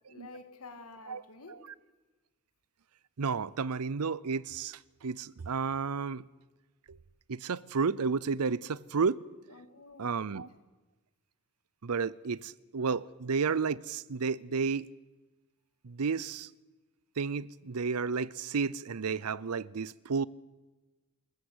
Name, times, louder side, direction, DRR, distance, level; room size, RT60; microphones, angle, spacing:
voice 1, 0.1-1.6 9.5-10.2, left 3 dB, 75° left, 2.4 m, -49 dB
voice 2, 3.2-6.2 6.9-7.0 7.3-9.2 10.0-10.5 11.8-14.9 15.8-16.5 17.2-20.3, right 5 dB, 85° right, 0.6 m, -32 dB
26.5 x 14.5 x 8.0 m
head